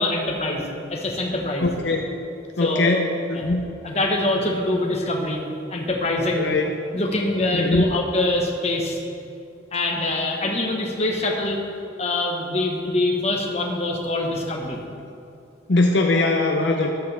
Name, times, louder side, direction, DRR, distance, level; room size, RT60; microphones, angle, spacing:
voice 1, 0.0-1.7 2.6-3.1 3.3-3.5 3.8-5.4 5.7-6.5 6.9-9.0 9.7-11.6 12.0-14.8, left 2 dB, 35° left, 0 dB, 1.3 m, -24 dB
voice 2, 1.6-2.1 2.6-3.7 6.3-6.7 7.5-7.8 15.7-16.9, left 2 dB, 65° left, 2 dB, 0.7 m, -21 dB
13.0 x 11.0 x 3.4 m, 2.6 s
head